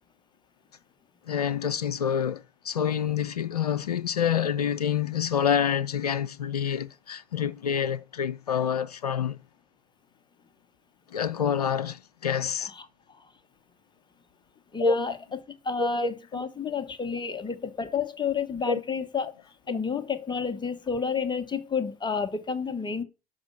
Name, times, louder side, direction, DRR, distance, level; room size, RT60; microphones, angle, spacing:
voice 1, 1.3-9.4 11.1-12.7 14.8-15.1 15.8-16.1 18.7-18.8, left 8 dB, 90° left, 0.4 m, -27 dB
voice 2, 14.7-15.2 15.6-19.3 19.7-23.0, left 5 dB, 25° left, 1.2 m, -30 dB
6.2 x 5.1 x 5.3 m
hypercardioid pair, 70°, 19 cm